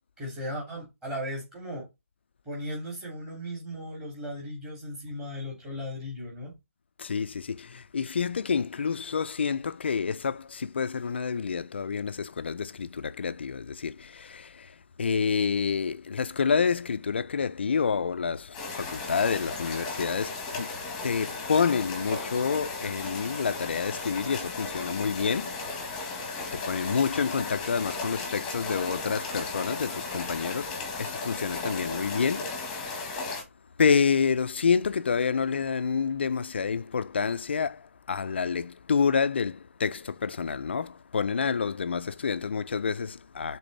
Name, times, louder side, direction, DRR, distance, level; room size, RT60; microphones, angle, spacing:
voice 1, 0.2-1.9 2.4-6.5, equal, 10° right, 3.1 m, -36 dB
voice 2, 7.0-25.6 26.5-33.3 33.8-43.6, left 6 dB, 50° left, 0.5 m, -28 dB
sound 1, 18.5-33.4, left 3 dB, 10° left, 1.6 m, -35 dB
7.0 x 4.1 x 4.1 m
hypercardioid pair, 165°, 7 cm